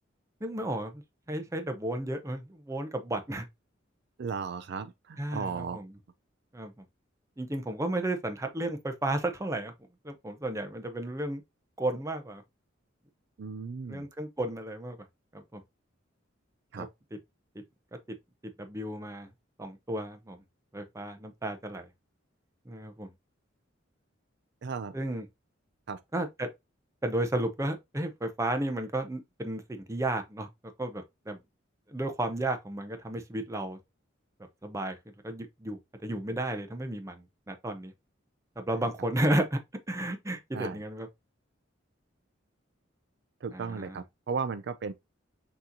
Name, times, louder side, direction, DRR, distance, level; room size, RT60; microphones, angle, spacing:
voice 1, 0.4-1.0 1.3-3.5 5.2-5.9 6.5-6.7 7.4-9.7 10.0-11.4 11.8-12.4 13.9-15.0 15.3-15.6 16.8-16.9 18.6-19.3 19.6-20.4 20.7-21.9 22.7-23.1 24.9-25.2 26.1-26.5 27.0-30.5 30.8-31.4 31.9-33.8 34.6-35.0 35.2-37.9 38.6-39.6 39.9-41.1 43.5-44.0, right 1 dB, 15° right, 0.6 m, -33 dB
voice 2, 4.2-5.8 13.4-14.1 16.7-16.9 24.6-25.0 25.9-26.0 38.8-38.9 40.5-40.8 43.4-44.9, right 5 dB, 60° right, 0.4 m, -35 dB
6.0 x 2.9 x 2.6 m
head